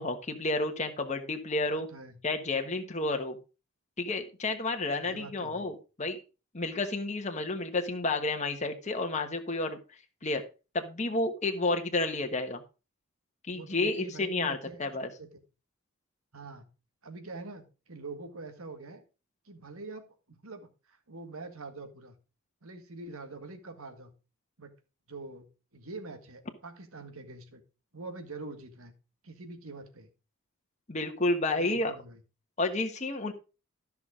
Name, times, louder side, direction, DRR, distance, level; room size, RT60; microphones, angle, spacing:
voice 1, 0.0-1.9 2.2-3.4 4.0-6.2 6.5-9.8 10.2-10.4 10.7-12.6 13.5-15.1 30.9-31.9 32.6-33.3, left 2 dB, 35° left, 5 dB, 1.2 m, -31 dB
voice 2, 1.7-2.2 5.0-5.7 13.5-14.8 15.2-15.3 16.3-16.6 17.0-19.0 19.5-22.1 22.6-24.1 24.6-24.7 25.1-25.5 25.7-27.6 27.9-28.9 29.2-30.1 31.5-32.2, right 3 dB, 75° right, 6 dB, 1.9 m, -44 dB
13.5 x 5.9 x 4.9 m, 0.32 s
head